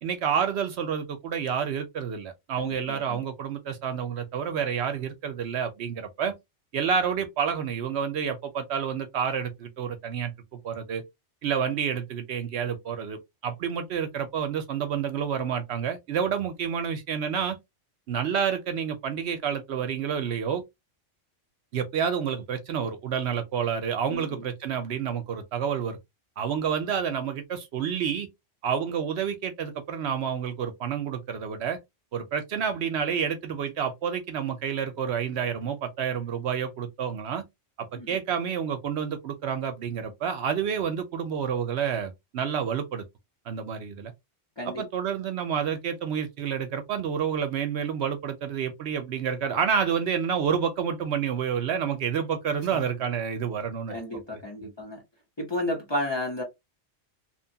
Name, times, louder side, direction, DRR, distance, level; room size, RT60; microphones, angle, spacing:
voice 1, 0.0-6.3 6.7-11.0 11.4-17.6 18.1-20.6 21.7-26.0 26.4-28.3 28.6-31.8 32.1-37.4 37.8-43.0 43.5-44.1 44.6-54.0 54.6-54.7, right 7 dB, 65° right, 0.8 m, -29 dB
voice 2, 2.6-3.2 24.1-24.5 37.9-38.2 44.6-44.8 52.7-52.8 53.9-55.0 55.4-56.4, left 1 dB, 25° left, 0.7 m, -33 dB
3.0 x 2.1 x 2.6 m
omnidirectional pair, 1.3 m